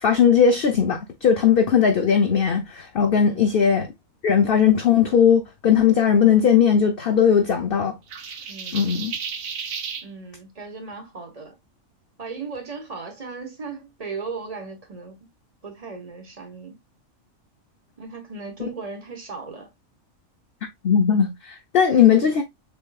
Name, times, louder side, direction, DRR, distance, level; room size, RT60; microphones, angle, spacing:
voice 1, 0.0-3.9 4.2-8.0 8.7-9.1 18.6-18.7 20.8-22.4, left 7 dB, 50° left, 0.8 m, -18 dB
sound 1, 8.1-10.1, right 6 dB, 90° right, 1.3 m, -33 dB
voice 2, 8.5-9.0 10.0-11.6 12.2-15.3 15.6-16.8 18.0-19.7 21.9-22.3, right 4 dB, 30° right, 1.3 m, -37 dB
6.9 x 3.1 x 2.3 m
omnidirectional pair, 1.4 m